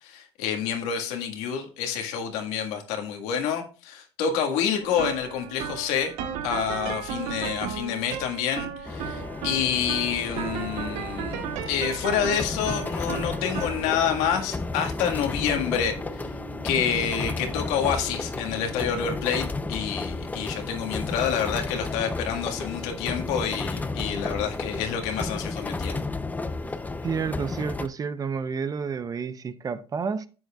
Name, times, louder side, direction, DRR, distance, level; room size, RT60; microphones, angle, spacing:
voice 1, 0.0-6.1 6.4-16.2 16.6-26.0, left 8 dB, 90° left, 1.8 m, -28 dB
sound 1, 4.8-22.0, right 9 dB, 85° right, 1.0 m, -37 dB
sound 2, 8.8-27.9, left 3 dB, 15° left, 0.7 m, -33 dB
voice 2, 27.0-30.3, right 5 dB, 35° right, 0.7 m, -30 dB
11.0 x 7.9 x 2.4 m
cardioid pair, 100°, 11 cm